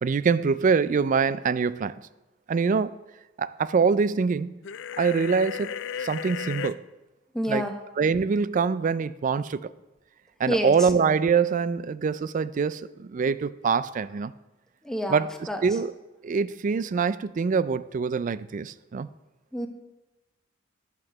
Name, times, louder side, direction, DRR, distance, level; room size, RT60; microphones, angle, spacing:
voice 1, 0.0-2.0 2.5-3.0 3.4-4.5 5.0-5.7 6.0-6.8 7.5-7.6 8.0-9.7 10.4-14.3 15.1-15.9 16.2-19.1, right 5 dB, 40° right, 16 dB, 0.3 m, -24 dB
sound 1, 4.6-6.7, left 8 dB, 65° left, 0.4 m, -34 dB
voice 2, 7.3-7.7 10.5-10.9 14.8-15.6 19.5-19.7, equal, 5° left, 4 dB, 0.9 m, -28 dB
10.5 x 6.0 x 6.5 m, 1.1 s
head